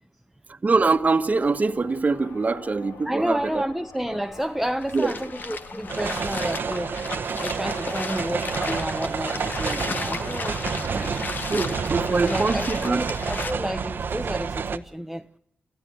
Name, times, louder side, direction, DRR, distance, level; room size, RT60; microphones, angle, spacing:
voice 1, 0.5-3.6 4.9-5.1 11.5-13.1, right 4 dB, 45° right, 1.4 m, -23 dB
continuum alien invasion, 0.7-14.1, left 4 dB, 85° left, 2.0 m, -47 dB
voice 2, 3.0-6.9 7.4-11.3 12.2-15.3, equal, 5° right, 1.0 m, -31 dB
sound 1, 4.8-13.5, left 4 dB, 60° left, 1.6 m, -34 dB
sound 2, 5.9-14.8, right 6 dB, 70° right, 1.0 m, -29 dB
28.0 x 15.0 x 8.1 m
cardioid pair, 50°, 4 cm